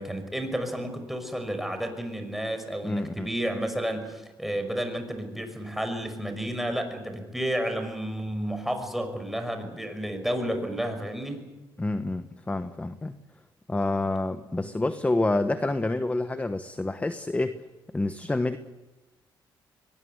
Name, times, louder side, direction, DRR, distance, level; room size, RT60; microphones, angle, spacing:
voice 1, 0.0-11.5, equal, ahead, 6 dB, 5.8 m, -31 dB
voice 2, 2.8-3.3 11.8-13.1 13.7-17.6 17.9-18.6, left 2 dB, 15° left, 10 dB, 1.2 m, -28 dB
23.0 x 19.5 x 9.4 m, 1.1 s
cardioid pair, 80°, 9 cm